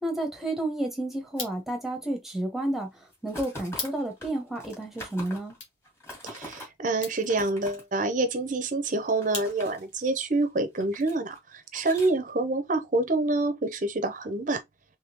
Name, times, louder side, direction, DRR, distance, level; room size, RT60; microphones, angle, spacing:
voice 1, 0.0-5.5, right 1 dB, ahead, 0.9 m, -31 dB
sound 1, 1.2-10.0, left 4 dB, 70° left, 1.3 m, -44 dB
sound 2, 3.1-5.6 5.8-6.7 7.1-7.8 8.8-10.2 10.6-11.4 11.7-12.1, equal, 15° left, 1.6 m, -43 dB
voice 2, 6.2-14.6, right 2 dB, 40° right, 0.6 m, -27 dB
3.6 x 3.2 x 2.8 m
head